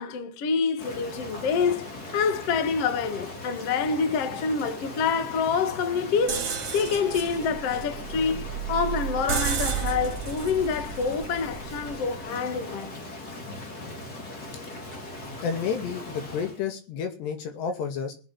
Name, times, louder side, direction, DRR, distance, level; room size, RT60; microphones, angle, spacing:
voice 1, 0.0-1.9 2.1-12.9, left 5 dB, 55° left, 1.8 m, -27 dB
Rain, 0.8-16.6, left 2 dB, 30° left, 1.8 m, -39 dB
sound 1, 6.3-12.1, right 8 dB, 40° right, 2.4 m, -32 dB
voice 2, 15.4-18.1, left 6 dB, 80° left, 4.5 m, -30 dB
18.0 x 8.9 x 7.5 m
omnidirectional pair, 4.9 m